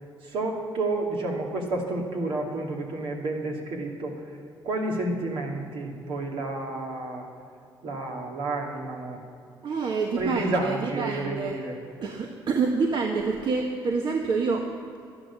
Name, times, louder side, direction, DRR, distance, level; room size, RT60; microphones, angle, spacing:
voice 1, 0.2-4.2 4.6-7.3 7.8-9.2 10.2-11.8, right 2 dB, 75° right, 0 dB, 2.5 m, -30 dB
voice 2, 9.6-11.6 12.0-14.7, right 4 dB, 60° right, 2 dB, 1.2 m, -27 dB
12.0 x 11.0 x 7.3 m, 2.6 s
cardioid pair, 80°, 9 cm